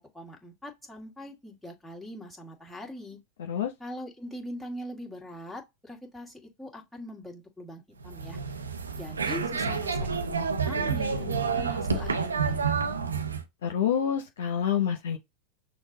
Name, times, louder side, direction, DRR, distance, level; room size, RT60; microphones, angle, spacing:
voice 1, 0.0-3.2 3.8-8.4 9.0-12.8, left 1 dB, 5° left, 1.7 m, -42 dB
voice 2, 3.4-3.7 13.6-15.2, left 8 dB, 75° left, 0.6 m, -27 dB
sound 1, 8.0-13.4, right 5 dB, 90° right, 0.7 m, -29 dB
6.3 x 2.2 x 3.8 m
hypercardioid pair, 95°, 0 cm